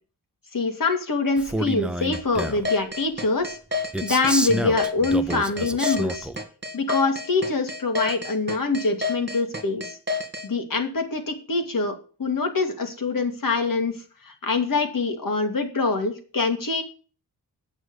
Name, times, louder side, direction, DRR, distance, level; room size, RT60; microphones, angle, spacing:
voice 1, 0.5-3.6 4.0-6.3 6.7-10.0 10.4-11.9 12.2-14.0 14.2-16.8, left 3 dB, 50° left, 5 dB, 2.5 m, -24 dB
Male speech man speaking, 1.4-2.7 3.9-6.4, right 1 dB, ahead, 0.7 m, -29 dB
sound 1, 2.1-10.5, left 3 dB, 25° right, 2.4 m, -29 dB
9.0 x 6.4 x 8.3 m, 0.38 s
wide cardioid pair, 105°, 41 cm